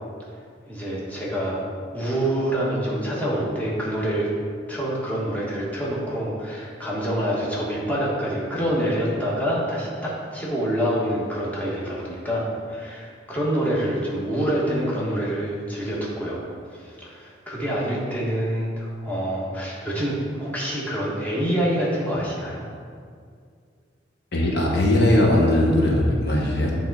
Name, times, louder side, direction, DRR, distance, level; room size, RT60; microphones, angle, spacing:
voice 1, 0.7-1.6 1.9-4.3 4.7-16.4 16.7-22.7, equal, 10° left, -6 dB, 1.3 m, -26 dB
voice 2, 24.3-26.7, left 1 dB, 60° left, -2 dB, 1.0 m, -19 dB
8.8 x 3.6 x 4.1 m, 2.1 s
head